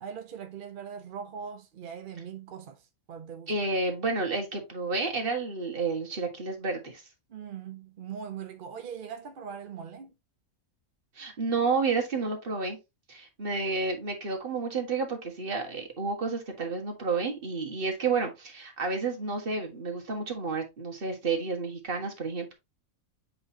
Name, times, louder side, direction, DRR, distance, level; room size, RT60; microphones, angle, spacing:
voice 1, 0.0-3.5 7.3-10.1, right 7 dB, 55° right, 0.6 m, -41 dB
voice 2, 3.5-7.0 11.1-12.8 13.1-22.5, right 4 dB, 40° right, 1.6 m, -30 dB
7.6 x 4.5 x 2.7 m
omnidirectional pair, 1.6 m